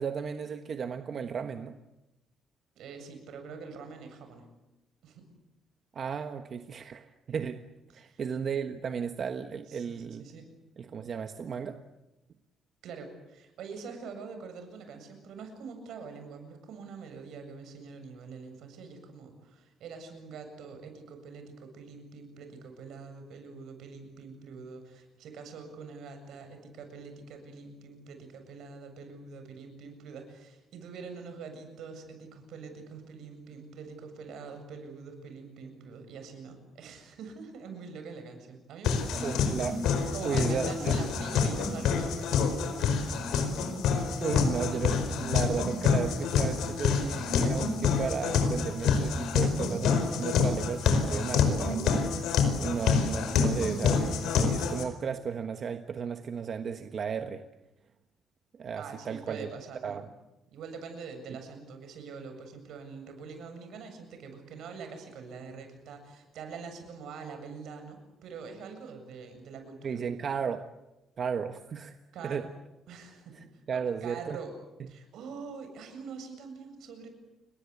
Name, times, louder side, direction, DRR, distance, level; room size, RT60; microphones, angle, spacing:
voice 1, 0.0-1.7 5.9-7.7 7.9-10.3 10.8-11.8 39.2-39.8 40.2-41.0 44.2-52.0 52.5-57.4 58.5-59.5 59.8-60.1 69.8-70.7 71.2-72.0 72.2-72.5 73.3-74.4, right 6 dB, 40° right, 7 dB, 1.3 m, -34 dB
voice 2, 2.8-4.4 5.0-5.3 7.9-8.2 9.7-10.6 12.8-39.6 40.1-44.2 58.8-60.1 60.5-70.1 72.1-72.5 72.9-73.4 73.7-74.5 74.9-77.1, right 5 dB, 75° right, 7 dB, 7.5 m, -44 dB
sound 1, 38.8-54.8, left 6 dB, 90° left, 4.8 m, -27 dB
29.5 x 22.0 x 8.3 m, 0.95 s
cardioid pair, 155°, 0 cm